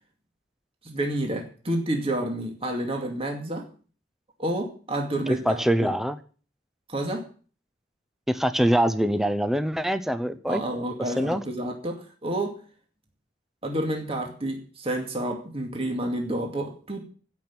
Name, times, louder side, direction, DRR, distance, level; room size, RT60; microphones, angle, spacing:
voice 1, 0.8-3.7 4.4-5.9 6.9-7.3 10.5-12.6 13.6-17.0, right 1 dB, 30° right, 3 dB, 2.4 m, -29 dB
voice 2, 5.3-6.2 8.3-10.6 11.2-11.4, equal, ahead, 12 dB, 0.6 m, -24 dB
15.5 x 6.1 x 8.6 m, 0.40 s
head